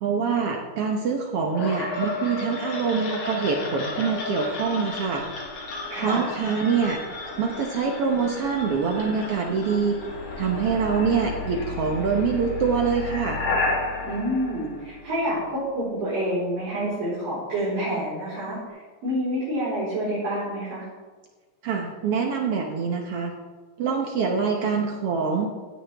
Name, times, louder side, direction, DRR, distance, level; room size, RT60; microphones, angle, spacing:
voice 1, 0.0-5.2 6.0-7.0 7.4-10.0 10.4-13.4 21.6-23.3 23.8-25.5, right 5 dB, 85° right, 1 dB, 1.3 m, -25 dB
sound 1, 1.5-15.4, left 3 dB, 60° left, 3.7 m, -32 dB
voice 2, 5.9-6.3 14.0-20.8, equal, 45° right, -12 dB, 5.2 m, -28 dB
16.5 x 10.0 x 3.4 m, 1.4 s
omnidirectional pair, 4.1 m